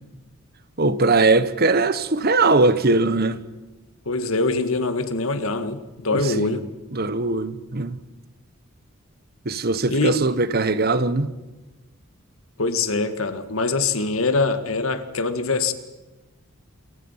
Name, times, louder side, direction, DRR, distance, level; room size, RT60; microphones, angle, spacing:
voice 1, 0.8-3.4 6.1-6.6 6.9-8.0 9.4-11.3, right 3 dB, 50° right, 1.3 m, -20 dB
voice 2, 4.1-6.6 9.9-10.2 12.6-15.7, left 3 dB, 80° left, 1.9 m, -23 dB
28.0 x 24.0 x 5.8 m
head